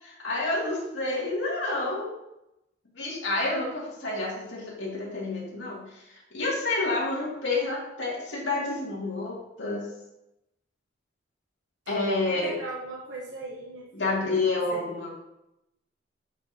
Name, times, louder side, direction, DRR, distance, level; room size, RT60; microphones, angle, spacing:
voice 1, 0.0-2.1 3.0-5.8 6.3-9.8 11.9-12.5 13.9-15.2, left 2 dB, 70° left, -4 dB, 2.3 m, -29 dB
voice 2, 12.2-14.3 14.7-14.8, right 3 dB, 65° right, -3 dB, 1.0 m, -39 dB
8.8 x 5.2 x 2.8 m, 0.88 s
head